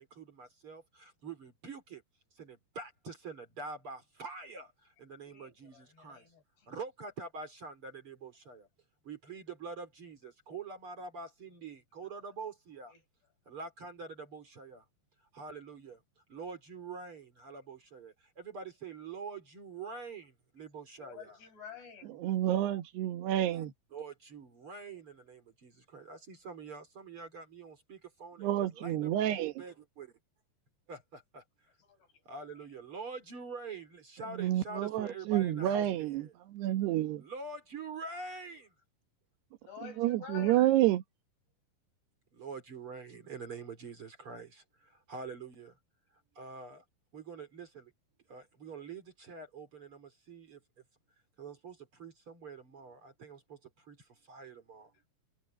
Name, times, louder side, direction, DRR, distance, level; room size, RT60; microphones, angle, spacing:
voice 1, 0.0-2.0 2.4-4.7 5.0-6.2 6.7-8.7 9.0-12.9 13.5-14.8 15.3-16.0 16.3-21.4 23.5-23.6 23.9-30.1 30.9-31.4 32.2-36.3 37.2-38.7 42.3-45.7 46.3-46.8 47.1-47.9 48.3-50.6 51.4-53.6 53.9-54.0 54.3-54.9, right 4 dB, 35° right, 3.3 m, -45 dB
voice 2, 5.2-6.7 12.0-12.2 12.9-13.0 21.0-22.2 31.8-32.2 39.6-40.8, left 7 dB, 75° left, 7.7 m, -50 dB
voice 3, 22.2-23.7 28.4-29.5 34.4-36.3 36.6-37.2 40.0-41.0, right 13 dB, 75° right, 3.4 m, -29 dB
omnidirectional pair, 4.8 m